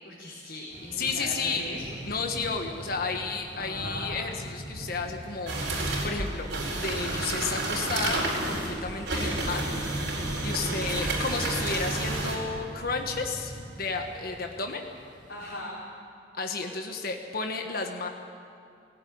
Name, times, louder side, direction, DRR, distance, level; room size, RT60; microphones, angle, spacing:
voice 1, 0.0-2.0 3.5-4.3 10.5-10.9 15.3-15.8, left 1 dB, 80° left, -6 dB, 3.9 m, -39 dB
Thunder / Rain, 0.7-15.6, right 1 dB, 45° right, 3.0 m, -45 dB
voice 2, 1.0-1.7 2.1-6.5 6.7-9.6 10.4-14.8 16.3-18.1, left 4 dB, 55° left, 4 dB, 1.4 m, -32 dB
sound 1, 5.5-12.4, right 2 dB, 70° right, 4.4 m, -30 dB
19.0 x 16.0 x 9.5 m, 2.4 s
head